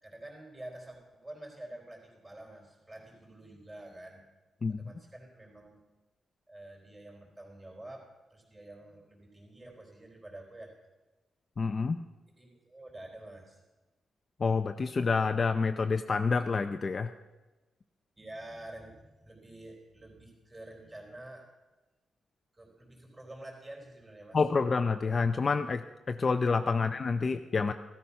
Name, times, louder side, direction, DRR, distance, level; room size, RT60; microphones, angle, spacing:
voice 1, 0.0-4.2 4.7-5.8 6.5-10.7 12.4-13.6 18.2-21.5 22.5-24.4, right 1 dB, 20° right, 0 dB, 3.9 m, -48 dB
voice 2, 11.6-12.0 14.4-17.1 24.3-27.7, left 4 dB, 30° left, 7 dB, 0.5 m, -28 dB
16.0 x 13.0 x 5.7 m, 1.1 s
wide cardioid pair, 160°, 0 cm